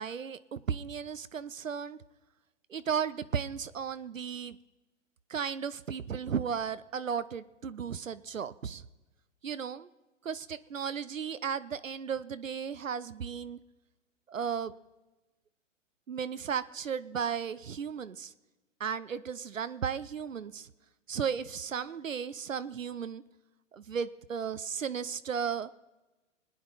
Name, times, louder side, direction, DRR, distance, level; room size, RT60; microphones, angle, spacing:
voice 1, 0.0-2.0 2.7-4.6 5.3-8.8 9.4-9.9 10.2-13.6 14.3-14.7 16.1-18.3 18.8-20.7 21.1-23.2 23.7-25.7, right 7 dB, 85° right, 14 dB, 0.7 m, -35 dB
24.5 x 9.4 x 4.1 m, 1.1 s
figure-of-eight pair, 120°, 38 cm